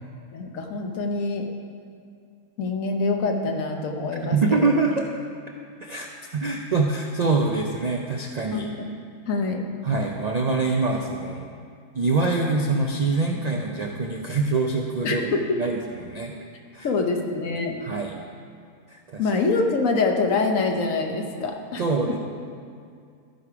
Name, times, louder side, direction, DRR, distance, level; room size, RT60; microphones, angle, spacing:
voice 1, 0.3-1.5 2.6-4.4 8.5-8.7 9.3-9.6 15.0-15.6 16.8-17.8 19.2-22.2, left 3 dB, 75° left, 3 dB, 1.3 m, -25 dB
voice 2, 4.2-5.1 5.8-8.7 9.8-11.5 11.9-15.3 15.6-16.3 16.7-16.9 17.8-18.1 18.9-19.3 21.8-22.2, right 3 dB, 60° right, 1 dB, 0.4 m, -24 dB
14.0 x 5.0 x 4.8 m, 2.3 s
omnidirectional pair, 1.4 m